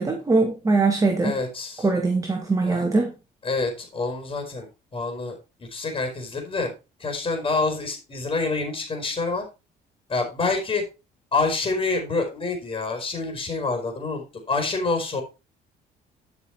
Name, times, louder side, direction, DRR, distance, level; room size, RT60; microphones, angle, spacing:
voice 1, 0.0-1.3 1.8-3.1, right 3 dB, 20° right, 2.3 m, -21 dB
voice 2, 1.2-1.9 2.7-2.8 3.4-6.7 7.0-9.4 10.1-10.8 11.3-15.2, left 3 dB, 30° left, 4.4 m, -27 dB
12.5 x 6.1 x 4.6 m
cardioid pair, 110°, 17 cm